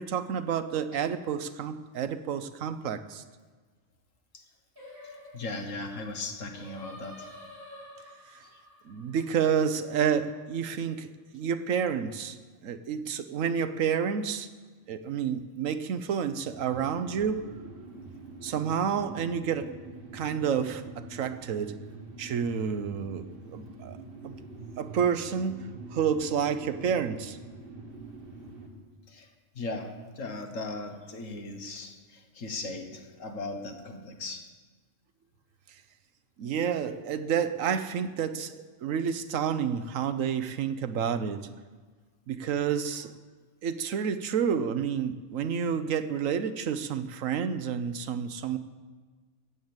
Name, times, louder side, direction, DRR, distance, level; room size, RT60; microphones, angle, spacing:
voice 1, 0.0-3.2 8.9-12.4 12.6-14.5 14.9-17.5 18.4-19.8 20.1-21.8 22.2-24.0 24.2-24.3 24.8-25.6 25.9-27.4 36.4-41.5 42.3-43.1 43.6-48.6, right 7 dB, 85° right, 1.2 m, -29 dB
Singing, 4.8-10.1, left 1 dB, 15° right, 5.9 m, -49 dB
voice 2, 5.0-7.4 8.4-8.6 29.1-29.3 29.6-34.5, left 2 dB, 75° left, 1.8 m, -38 dB
sound 1, 16.4-28.7, right 2 dB, 45° right, 1.9 m, -45 dB
14.0 x 8.8 x 7.9 m
omnidirectional pair, 1.3 m